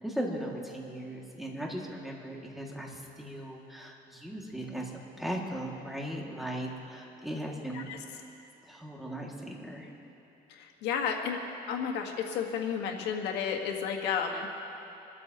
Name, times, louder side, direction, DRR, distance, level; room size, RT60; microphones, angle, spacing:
voice 1, 0.0-7.9 8.7-9.9, right 1 dB, ahead, -2 dB, 2.2 m, -38 dB
voice 2, 10.6-11.4 11.7-14.5, left 7 dB, 90° left, 2 dB, 1.6 m, -32 dB
27.0 x 13.5 x 3.0 m, 3.0 s
cardioid pair, 110°, 17 cm